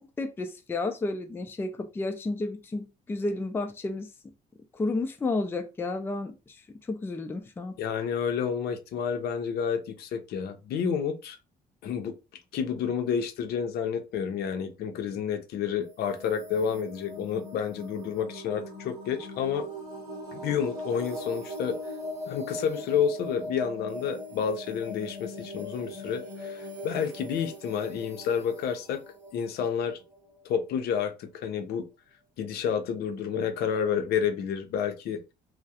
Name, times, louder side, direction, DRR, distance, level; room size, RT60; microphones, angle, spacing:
voice 1, 0.2-4.1 4.7-7.7, left 2 dB, 15° left, 0.3 m, -32 dB
voice 2, 7.8-11.4 11.8-12.2 12.5-19.7 20.3-21.8 22.3-29.0 29.3-30.0 30.4-31.9 32.4-35.2, left 7 dB, 70° left, 0.5 m, -30 dB
sound 1, 15.8-30.5, left 1 dB, 20° right, 0.8 m, -40 dB
2.3 x 2.0 x 2.7 m
cardioid pair, 110°, 17 cm